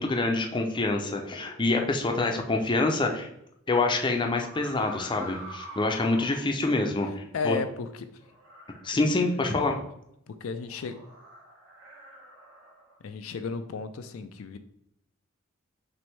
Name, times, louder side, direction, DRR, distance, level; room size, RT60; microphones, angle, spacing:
voice 1, 0.0-3.3 3.7-7.6 8.8-9.8, left 2 dB, 25° left, 3 dB, 0.5 m, -26 dB
sound 1, 0.9-2.0 4.3-6.5 8.2-9.6 10.6-13.0, equal, 75° right, 1.4 m, -46 dB
voice 2, 7.3-8.1 10.3-11.0 13.0-14.6, left 5 dB, 80° left, 9 dB, 0.4 m, -33 dB
6.0 x 2.6 x 3.3 m, 0.78 s
head